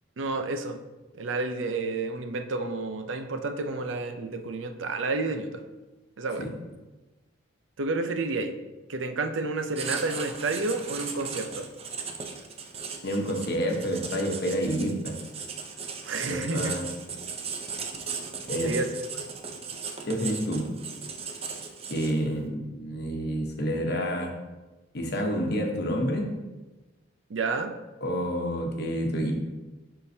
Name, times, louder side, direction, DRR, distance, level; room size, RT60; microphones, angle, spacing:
voice 1, 0.2-0.8 1.2-5.6 6.2-6.5 7.8-8.5 8.9-11.7 16.0-16.7 18.6-18.9 27.3-27.7, right 3 dB, 75° right, 7 dB, 0.6 m, -30 dB
Writing, 9.8-22.3, right 5 dB, 30° right, 0.6 m, -37 dB
voice 2, 13.0-15.2 16.3-16.9 18.5-18.8 20.1-20.7 21.9-24.3 24.9-26.3 28.0-29.3, equal, 55° left, 2 dB, 1.0 m, -28 dB
10.5 x 3.8 x 2.8 m, 1.1 s
head